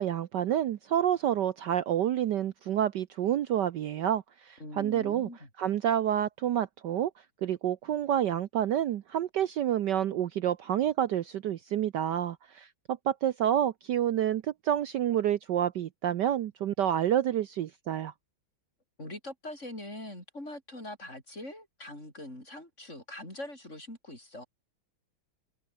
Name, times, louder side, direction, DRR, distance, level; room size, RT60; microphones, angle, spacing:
voice 1, 0.0-5.3 5.6-7.1 7.4-18.1, right 10 dB, 65° right, 1.3 m, -28 dB
voice 2, 4.6-5.5 19.0-24.5, left 1 dB, 35° left, 8.5 m, -42 dB
omnidirectional pair, 2.2 m